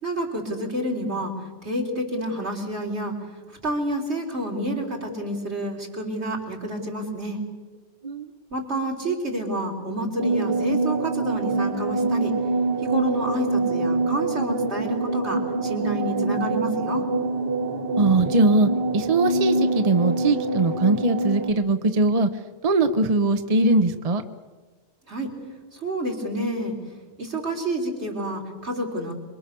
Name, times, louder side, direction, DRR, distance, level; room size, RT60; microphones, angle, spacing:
voice 1, 0.0-1.3 1.6-3.2 3.6-7.4 8.5-12.4 12.8-17.1 25.1-25.4 25.7-26.8 27.2-29.1, right 1 dB, 70° right, 0 dB, 4.4 m, -29 dB
sound 1, 10.2-21.5, right 2 dB, 55° right, 1.6 m, -25 dB
voice 2, 17.9-22.3 22.6-24.2, right 2 dB, 35° right, 8 dB, 1.0 m, -21 dB
27.5 x 23.0 x 6.9 m, 1.3 s
omnidirectional pair, 1.2 m